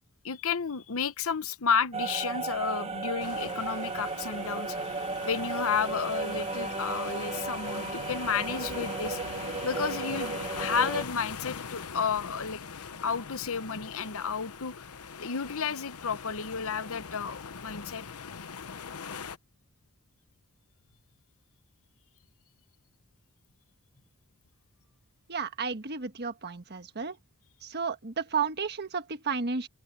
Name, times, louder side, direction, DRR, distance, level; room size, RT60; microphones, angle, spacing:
voice 1, 0.2-4.8 5.2-9.2 9.6-12.6 13.0-14.9 15.2-18.0, left 6 dB, 65° left, 0.9 m, -32 dB
sound 1, 1.9-11.1, right 4 dB, 25° right, 1.0 m, -35 dB
sound 2, 3.2-19.4, left 5 dB, 90° left, 1.0 m, -42 dB
voice 2, 25.3-27.2 27.6-29.7, right 5 dB, 50° right, 1.4 m, -32 dB
open air
head